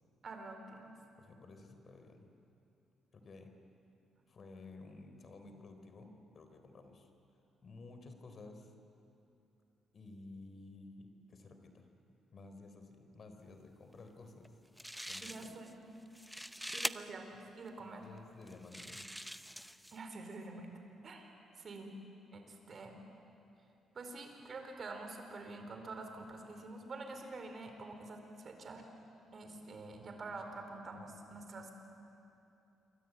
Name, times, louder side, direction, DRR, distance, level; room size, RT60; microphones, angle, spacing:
voice 1, 0.2-1.0 15.2-15.8 16.7-18.0 19.9-20.7 21.0-22.0 22.3-23.0 23.9-28.9 29.3-31.7, right 3 dB, 45° right, 4 dB, 4.6 m, -47 dB
voice 2, 1.2-2.3 3.1-3.5 4.3-7.1 7.6-8.7 9.9-11.9 12.3-14.6 15.0-15.6 18.0-19.1, left 3 dB, 45° left, 7 dB, 3.6 m, -53 dB
sound 1, 14.4-14.5 14.8-15.7 16.1-16.9 17.7-17.8 18.5-20.0, equal, ahead, 0.7 m, -43 dB
27.0 x 23.5 x 9.2 m, 2.8 s
cardioid pair, 90°, 0 cm